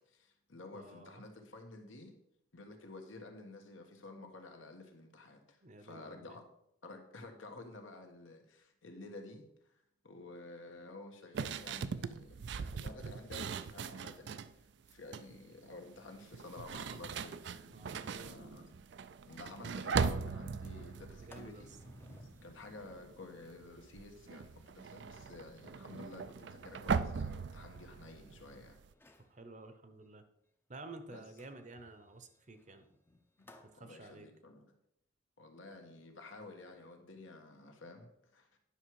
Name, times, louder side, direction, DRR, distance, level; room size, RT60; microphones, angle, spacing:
voice 1, 0.1-2.1 2.5-6.4 6.8-9.5 10.0-14.4 14.9-17.4 18.2-18.7 19.3-21.7 22.2-28.8 31.1-31.2 33.7-34.7 35.4-38.6, left 2 dB, 80° left, 4 dB, 1.5 m, -51 dB
voice 2, 0.7-1.2 5.6-6.4 17.7-18.3 21.2-21.8 29.3-30.2 30.7-32.9 33.7-34.3, right 2 dB, 40° right, 9 dB, 0.8 m, -51 dB
sound 1, 11.3-14.5 14.9-15.4 16.3-22.5 22.8-23.2 23.4-28.9, right 5 dB, 60° right, 0.4 m, -39 dB
sound 2, 15.6-18.9 20.7-23.5, right 2 dB, 85° right, 1.1 m, -59 dB
Sliding door, 18.9-19.0 19.3-19.4 19.8-20.1 20.5-28.5 28.9-29.4 31.4-33.8, left 1 dB, 10° left, 0.6 m, -62 dB
10.0 x 6.0 x 4.7 m, 0.77 s
head